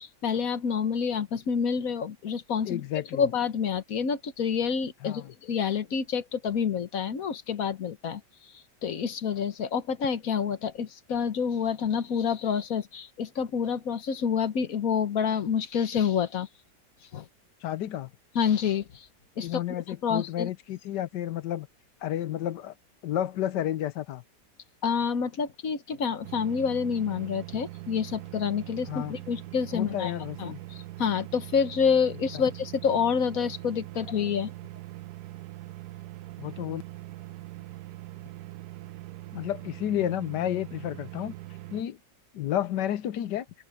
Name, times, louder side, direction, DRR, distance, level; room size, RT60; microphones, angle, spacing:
voice 1, 0.0-2.8 3.1-16.5 17.1-17.3 18.3-19.1 19.4-20.5 24.8-30.1 30.4-34.5, left 6 dB, 55° left, 1.4 m, -28 dB
voice 2, 2.7-3.2 5.0-5.2 17.6-18.1 19.4-21.7 22.0-22.7 23.0-24.2 28.9-29.1 29.7-30.6 32.3-32.4 36.4-36.8 39.3-41.3 41.7-42.0 42.3-43.5, left 11 dB, 75° left, 1.3 m, -31 dB
sound 1, 26.2-41.8, right 17 dB, 70° right, 1.1 m, -42 dB
omnidirectional pair, 2.0 m